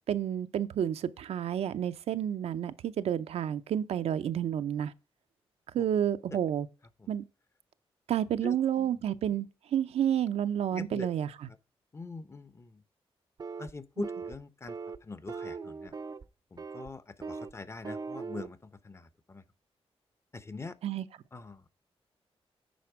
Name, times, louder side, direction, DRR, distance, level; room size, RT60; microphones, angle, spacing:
voice 1, 0.1-4.9 5.7-6.7 7.1-7.2 8.1-11.5 14.0-14.1 20.8-21.0, right 10 dB, 85° right, 0.5 m, -30 dB
voice 2, 8.4-9.0 10.7-11.1 11.9-12.8 13.6-15.9 16.5-19.4 20.3-20.8 21.3-21.7, left 3 dB, 25° left, 0.7 m, -43 dB
sound 1, 13.4-13.7 14.0-14.4 14.7-15.0 15.3-16.2 16.6-16.9 17.2-17.5 17.8-18.5, right 4 dB, 40° right, 0.5 m, -39 dB
10.5 x 4.3 x 4.7 m
cardioid pair, 90°, 10 cm